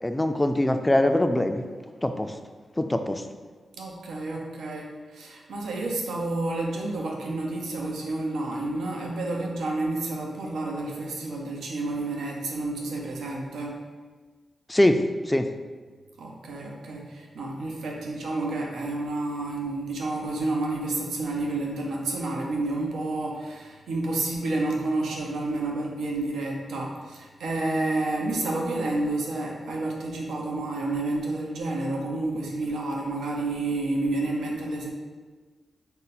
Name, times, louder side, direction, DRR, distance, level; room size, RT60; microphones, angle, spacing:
voice 1, 0.0-1.7 2.0-2.3 2.8-3.2 14.7-15.0 15.3-15.5, left 1 dB, 15° left, 7 dB, 0.3 m, -22 dB
voice 2, 3.8-13.8 16.2-34.9, right 2 dB, 90° right, -1 dB, 0.6 m, -30 dB
5.2 x 2.1 x 4.1 m, 1.4 s
cardioid pair, 65°, 0 cm